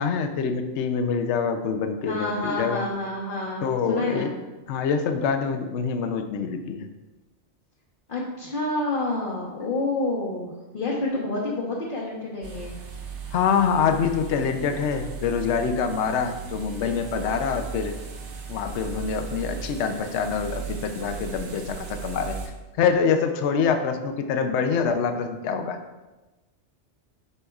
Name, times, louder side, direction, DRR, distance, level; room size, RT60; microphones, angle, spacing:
voice 1, 0.0-2.8 3.6-4.3 4.7-6.9 13.3-17.9 18.5-22.4 22.8-25.8, left 6 dB, 75° left, 7 dB, 0.9 m, -25 dB
voice 2, 2.1-4.4 8.1-12.8, left 2 dB, 45° left, -5 dB, 1.1 m, -28 dB
sound 1, 12.4-22.5, right 6 dB, 75° right, 1.1 m, -37 dB
8.2 x 5.6 x 2.4 m, 1.1 s
omnidirectional pair, 1.2 m